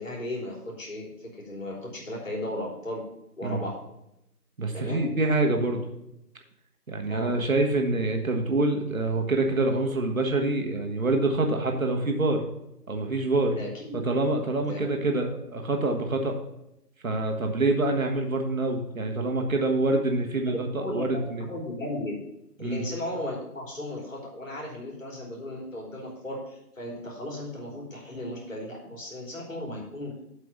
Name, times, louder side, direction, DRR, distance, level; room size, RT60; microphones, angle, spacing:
voice 1, 0.0-3.0 3.4-3.8 4.7-5.0 7.1-7.4 13.5-14.0 14.7-15.0 20.5-21.2 21.5-22.1 22.6-30.2, left 1 dB, 55° left, -2 dB, 3.5 m, -36 dB
voice 2, 4.6-5.8 6.9-12.5 12.9-13.6 13.9-16.4 17.0-21.4 22.6-22.8, right 2 dB, 55° right, 3 dB, 1.6 m, -26 dB
8.0 x 5.0 x 6.9 m, 0.85 s
figure-of-eight pair, 160°, 48 cm